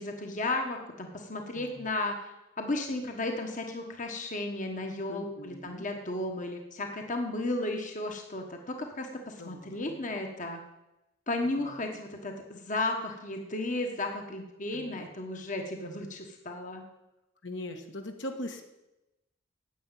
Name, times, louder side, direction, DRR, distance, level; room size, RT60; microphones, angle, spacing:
voice 1, 0.0-2.3 2.6-10.6 11.3-16.8, left 2 dB, 40° left, 3 dB, 1.4 m, -34 dB
voice 2, 1.5-1.9 5.1-5.8 9.4-10.0 11.4-11.9 14.7-15.1 17.4-18.6, left 1 dB, 65° left, 4 dB, 1.6 m, -41 dB
10.0 x 8.5 x 9.1 m, 0.94 s
head